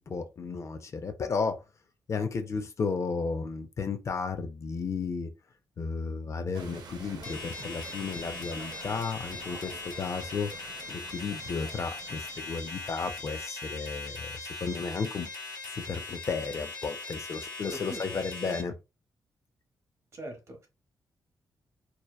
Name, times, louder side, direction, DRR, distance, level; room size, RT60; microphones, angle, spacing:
voice 1, 0.0-1.6 2.1-5.3 5.8-10.5 10.9-15.3 15.7-18.7, left 5 dB, 40° left, 0.3 m, -33 dB
sound 1, 6.5-13.0, right 5 dB, 70° right, 0.5 m, -48 dB
sound 2, 7.2-18.6, left 3 dB, 80° left, 1.2 m, -40 dB
voice 2, 17.7-18.0 18.4-18.6 20.1-20.7, equal, 45° right, 0.9 m, -41 dB
2.7 x 2.1 x 2.2 m
wide cardioid pair, 130°, 7 cm